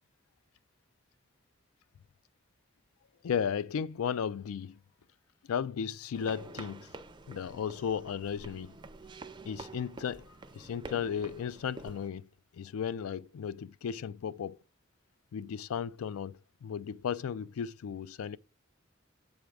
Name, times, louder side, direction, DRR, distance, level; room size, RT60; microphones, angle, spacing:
voice 1, 3.2-4.8 5.4-6.9 7.3-8.8 9.5-12.3 12.5-14.6 15.3-18.4, left 7 dB, 90° left, 0.4 m, -35 dB
sound 1, 6.1-12.1, right 3 dB, 20° right, 0.4 m, -48 dB
7.7 x 3.5 x 4.9 m
head